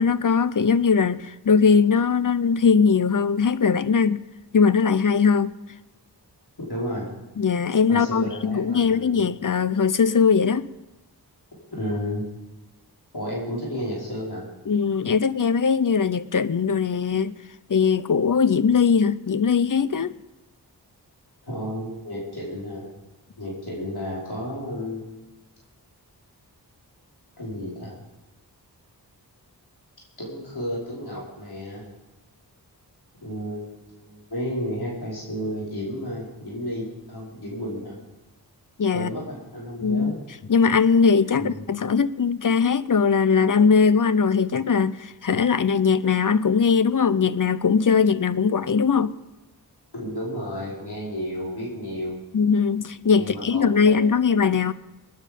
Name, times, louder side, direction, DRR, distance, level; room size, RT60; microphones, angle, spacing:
voice 1, 0.0-4.2 4.5-5.5 7.4-10.7 14.7-17.4 17.7-20.1 38.8-39.1 39.8-40.1 40.5-49.2 52.3-54.7, left 5 dB, 50° left, 16 dB, 0.7 m, -20 dB
voice 2, 6.7-7.1 7.9-9.3 11.7-12.2 13.1-14.4 21.4-22.8 23.4-25.2 27.4-27.9 30.2-31.8 33.2-38.0 38.9-40.1 41.3-41.6 49.9-52.2 53.2-54.2, equal, 65° left, -6 dB, 5.2 m, -32 dB
21.0 x 9.8 x 5.3 m, 1.1 s
wide cardioid pair, 55°, 41 cm